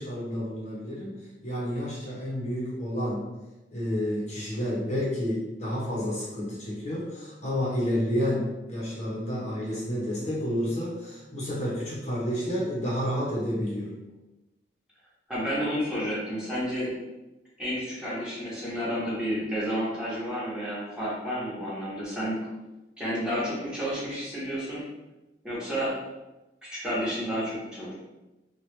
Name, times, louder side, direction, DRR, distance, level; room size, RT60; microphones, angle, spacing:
voice 1, 0.0-3.3 3.7-14.0, equal, 40° left, -6 dB, 0.8 m, -30 dB
voice 2, 15.3-16.9 17.6-22.4 23.0-24.8 25.4-25.9 26.7-27.9, equal, 5° right, -9 dB, 1.0 m, -31 dB
3.0 x 2.3 x 3.2 m, 1.0 s
head